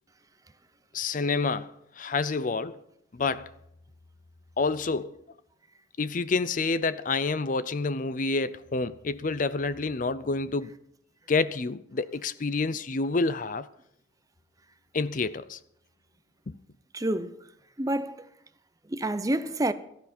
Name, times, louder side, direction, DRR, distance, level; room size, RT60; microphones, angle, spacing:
voice 1, 0.9-2.8 3.1-3.5 4.6-5.2 6.0-10.7 11.3-13.7 14.9-15.6 16.5-16.6, left 3 dB, 45° left, 0.5 m, -28 dB
voice 2, 16.9-17.4 17.8-18.3 18.9-19.7, right 1 dB, 20° right, 0.6 m, -28 dB
17.5 x 13.5 x 4.4 m
head